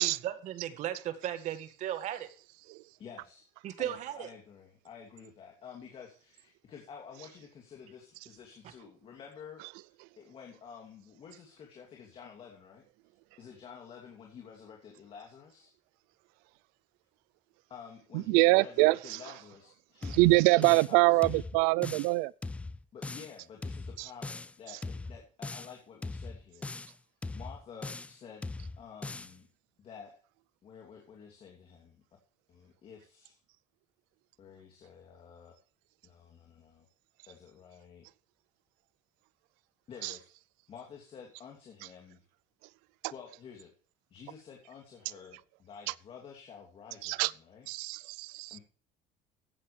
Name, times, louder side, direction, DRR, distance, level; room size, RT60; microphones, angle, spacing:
voice 1, 0.0-2.3 3.6-4.3, right 11 dB, 55° right, 2.0 m, -36 dB
voice 2, 3.0-3.5 3.8-9.6 10.2-12.8 13.4-15.7 17.7-21.4 22.9-26.7 27.3-28.4 28.8-29.5 29.8-30.2 30.6-32.0 32.5-33.4 34.4-35.5 36.0-36.8 37.3-38.0 39.9-40.3 40.7-42.2 43.1-43.7 44.1-47.7 48.5-48.6, left 7 dB, 40° left, 2.8 m, -50 dB
voice 3, 18.3-19.0 20.2-22.3 40.0-40.1 47.0-47.3 47.7-48.6, right 23 dB, 85° right, 0.4 m, -24 dB
sound 1, 20.0-21.0 21.2-22.1 22.4-23.3 23.6-24.5 24.8-25.7 26.0-26.9 27.2-28.2 28.4-29.3, left 3 dB, 10° left, 0.4 m, -40 dB
15.0 x 10.0 x 3.3 m
cardioid pair, 140°, 15 cm